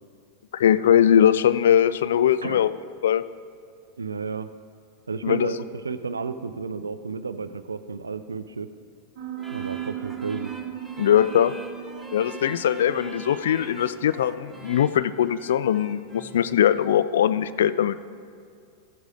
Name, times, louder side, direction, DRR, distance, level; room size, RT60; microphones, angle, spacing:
voice 1, 0.5-2.7 3.0-3.2 5.2-5.5 11.0-11.6 12.1-18.0, left 9 dB, 60° left, 15 dB, 0.3 m, -21 dB
voice 2, 4.0-4.5 5.1-8.7 9.5-10.5, right 4 dB, 75° right, 12 dB, 0.4 m, -32 dB
Piano, 9.2-15.4, right 10 dB, 45° right, 1.2 m, -38 dB
sound 1, 9.4-16.6, right 3 dB, 10° right, 1.1 m, -44 dB
14.0 x 8.0 x 3.7 m, 2.3 s
figure-of-eight pair, 90°, 0 cm